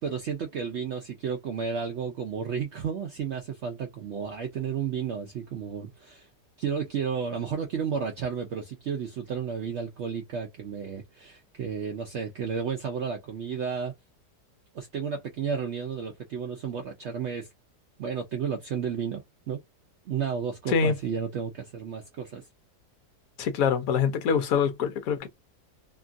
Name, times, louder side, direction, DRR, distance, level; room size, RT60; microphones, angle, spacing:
voice 1, 0.0-6.3 6.6-13.9 14.7-17.5 18.0-19.6 20.1-22.5, right 6 dB, 75° right, 0.6 m, -32 dB
voice 2, 23.4-25.3, left 6 dB, 70° left, 1.0 m, -24 dB
2.9 x 2.3 x 2.5 m
omnidirectional pair, 1.7 m